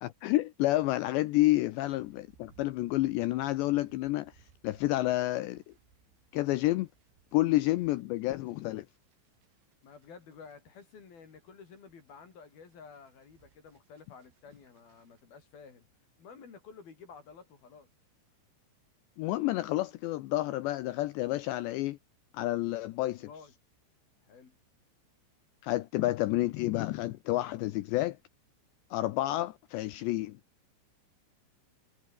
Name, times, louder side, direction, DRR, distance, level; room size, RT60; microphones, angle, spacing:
voice 1, 0.0-4.3 4.6-5.6 6.3-6.9 7.3-8.9 19.2-22.0 22.3-23.3 25.6-28.2 28.9-30.4, left 17 dB, 85° left, 2.6 m, -29 dB
sound 1, 1.8-15.2, right 8 dB, 65° right, 6.0 m, -66 dB
voice 2, 9.8-15.9 16.2-17.9 23.1-23.5 24.2-24.6, left 5 dB, 50° left, 5.6 m, -52 dB
omnidirectional pair, 5.9 m